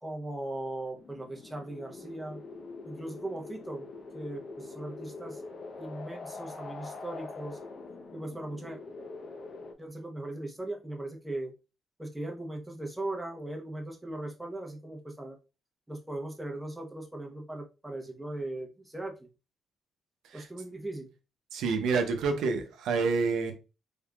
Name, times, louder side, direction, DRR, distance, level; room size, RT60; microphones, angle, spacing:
voice 1, 0.0-2.4 2.8-3.9 4.1-5.4 5.8-7.6 8.1-8.8 9.8-11.5 12.0-15.4 15.9-19.3 20.3-21.1, right 1 dB, 5° right, 1 dB, 0.9 m, -38 dB
sound 1, 0.9-9.7, left 3 dB, 55° left, 0.7 m, -44 dB
voice 2, 21.5-23.5, right 4 dB, 85° right, 5 dB, 0.7 m, -28 dB
3.6 x 3.5 x 2.3 m, 0.30 s
cardioid pair, 90°, 0 cm